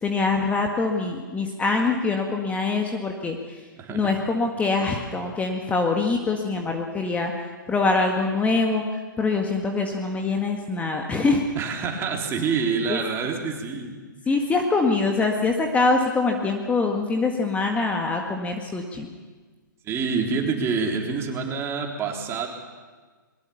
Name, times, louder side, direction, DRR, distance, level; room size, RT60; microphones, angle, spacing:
voice 1, 0.0-3.6 3.9-11.4 12.9-13.0 14.3-19.1, left 3 dB, 10° left, 2 dB, 1.7 m, -24 dB
voice 2, 3.8-4.1 11.6-14.0 19.8-22.5, right 5 dB, 20° right, 1 dB, 3.5 m, -27 dB
22.0 x 20.5 x 7.1 m, 1.4 s
figure-of-eight pair, 120°, 11 cm